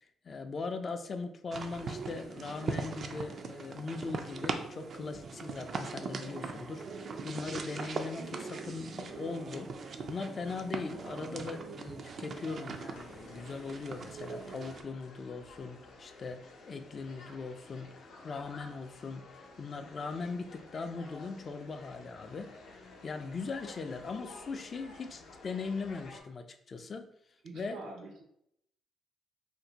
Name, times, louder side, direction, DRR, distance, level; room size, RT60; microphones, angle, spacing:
voice 1, 0.0-27.1 27.5-27.8, left 4 dB, 45° left, 7 dB, 0.3 m, -40 dB
sound 1, 1.5-14.8, right 4 dB, 55° right, 0.3 m, -40 dB
sound 2, 12.9-26.2, left 3 dB, 80° left, 0.6 m, -52 dB
voice 2, 27.4-28.2, right 2 dB, 80° right, 2 dB, 0.7 m, -45 dB
2.5 x 2.1 x 3.9 m, 0.74 s
cardioid pair, 90°, 0 cm